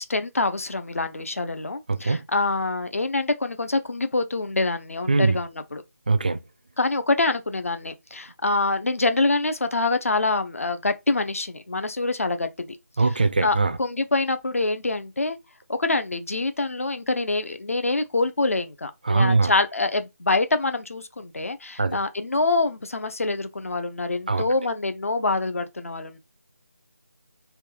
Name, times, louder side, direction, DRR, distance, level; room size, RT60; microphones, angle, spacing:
voice 1, 0.0-5.8 6.8-13.1 13.4-15.4 15.7-26.2, left 3 dB, 60° left, 0.5 m, -25 dB
voice 2, 1.9-2.2 5.1-5.4 6.1-6.4 13.0-13.8 19.1-19.5 21.8-22.0 24.3-24.4, right 3 dB, 30° right, 0.3 m, -21 dB
3.2 x 2.3 x 3.0 m
figure-of-eight pair, 160°, 9 cm